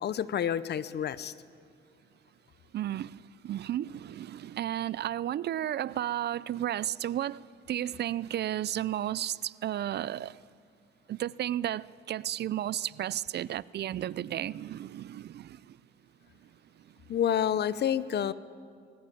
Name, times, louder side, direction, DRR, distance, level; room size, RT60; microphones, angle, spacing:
voice 1, 0.0-1.3 17.1-18.3, left 9 dB, 55° left, 0.8 m, -29 dB
voice 2, 2.7-10.4 11.1-15.8, right 12 dB, 55° right, 0.5 m, -33 dB
21.5 x 18.0 x 8.4 m
cardioid pair, 90°, 20 cm